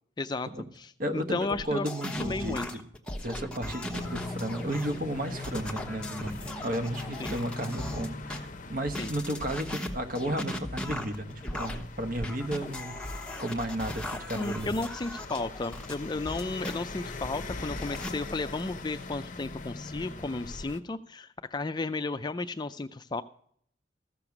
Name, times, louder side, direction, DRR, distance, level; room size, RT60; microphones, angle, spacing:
voice 1, 0.2-0.5 0.7-1.9 2.2-2.7 7.2-7.3 9.0-9.1 14.3-23.2, left 3 dB, 20° left, 10 dB, 0.4 m, -33 dB
voice 2, 1.0-2.8 3.2-6.3 6.6-13.0 13.4-14.7 19.8-19.9, right 1 dB, 45° right, 7 dB, 1.1 m, -33 dB
sound 1, 1.5-8.4 8.9-16.8 17.2-18.1, left 1 dB, 5° left, 1.0 m, -38 dB
sound 2, 3.9-20.8, left 3 dB, 40° left, 0.8 m, -42 dB
14.5 x 6.8 x 5.9 m, 0.63 s
head